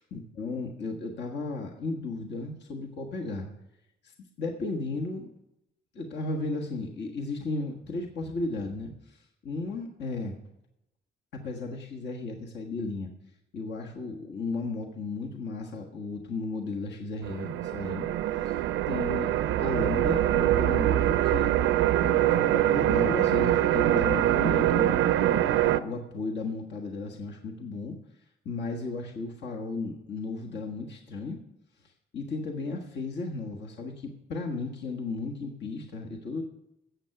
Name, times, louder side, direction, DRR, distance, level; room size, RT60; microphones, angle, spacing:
voice 1, 0.0-3.5 4.0-5.3 5.9-10.4 11.3-13.1 13.5-18.1 18.4-18.6 18.9-19.3 19.6-21.5 22.0-24.9 25.5-28.0 28.4-31.4 32.1-36.4, left 3 dB, 60° left, 1 dB, 1.5 m, -34 dB
sound 1, 17.2-25.8, right 13 dB, 85° right, 0.6 m, -24 dB
13.5 x 8.1 x 5.9 m, 0.87 s
cardioid pair, 90°, 20 cm